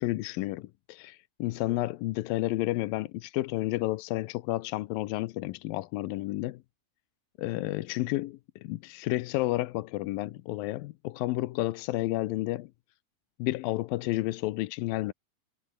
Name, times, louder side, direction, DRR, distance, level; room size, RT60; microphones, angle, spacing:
voice 1, 0.0-6.6 7.4-12.7 13.4-15.1, left 18 dB, 80° left, 2.4 m, -31 dB
omnidirectional pair, 4.3 m